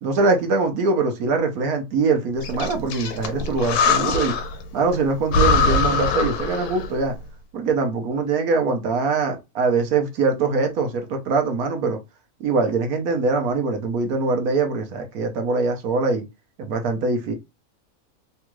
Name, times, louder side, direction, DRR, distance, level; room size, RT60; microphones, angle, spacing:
voice 1, 0.0-4.3 4.7-7.2 7.5-12.0 12.4-16.2 16.6-17.3, right 4 dB, 75° right, 1.2 m, -23 dB
Breathing, 2.4-4.6 4.9-5.0 5.3-7.0, left 4 dB, 80° left, 1.2 m, -22 dB
3.5 x 2.3 x 3.0 m
omnidirectional pair, 1.6 m